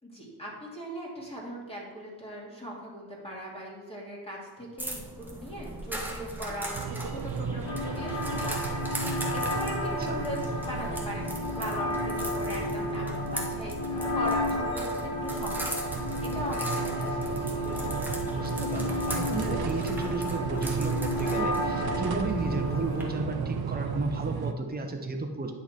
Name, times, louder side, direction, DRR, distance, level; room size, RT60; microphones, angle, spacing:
voice 1, 0.0-10.4 10.7-17.4, equal, 15° left, -4 dB, 2.6 m, -40 dB
sound 1, 4.8-23.0, right 1 dB, 5° right, 1.5 m, -40 dB
sound 2, 6.7-24.5, right 6 dB, 60° right, 0.6 m, -35 dB
sound 3, 7.6-23.7, left 1 dB, 80° left, 2.0 m, -32 dB
voice 2, 9.8-10.2 18.2-25.5, right 3 dB, 20° right, 3 dB, 1.0 m, -33 dB
9.7 x 5.8 x 4.4 m, 1.4 s
cardioid pair, 105°, 41 cm